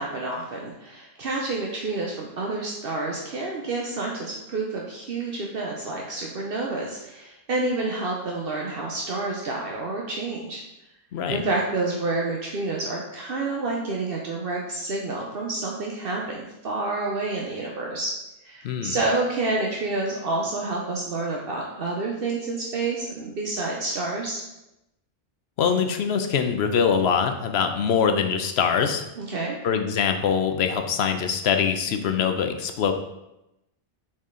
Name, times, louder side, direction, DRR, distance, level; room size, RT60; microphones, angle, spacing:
voice 1, 0.0-10.6 11.3-18.1 18.4-24.4 29.2-29.6, right 2 dB, 65° right, -1 dB, 1.0 m, -29 dB
voice 2, 18.6-19.0 25.6-29.0 29.6-32.9, left 6 dB, 85° left, 6 dB, 0.9 m, -23 dB
6.1 x 4.2 x 3.7 m, 0.91 s
omnidirectional pair, 1.1 m